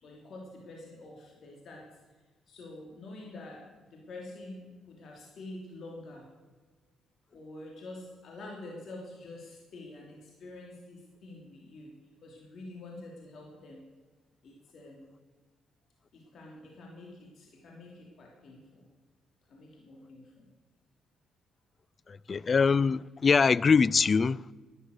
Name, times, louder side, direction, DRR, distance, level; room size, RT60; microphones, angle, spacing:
voice 1, 0.0-1.8 2.5-3.6 3.9-6.2 7.3-11.9 12.2-13.8 14.4-15.1 16.1-18.8 19.5-20.4, left 2 dB, 60° left, 3.1 m, -47 dB
voice 2, 22.1-24.5, left 5 dB, 40° left, 0.4 m, -23 dB
11.5 x 11.0 x 6.5 m
supercardioid pair, 75°, 0 cm